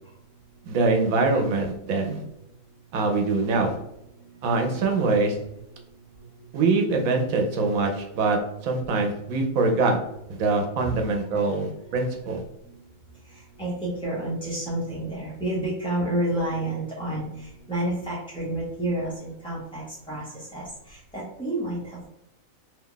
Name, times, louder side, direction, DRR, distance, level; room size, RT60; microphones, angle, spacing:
voice 1, 0.6-2.2 2.9-3.8 4.4-5.4 6.5-10.0 10.3-12.4, right 3 dB, 80° right, 3 dB, 1.1 m, -24 dB
voice 2, 13.3-22.1, right 1 dB, 5° left, -8 dB, 0.5 m, -30 dB
2.8 x 2.4 x 3.7 m, 0.81 s
omnidirectional pair, 1.4 m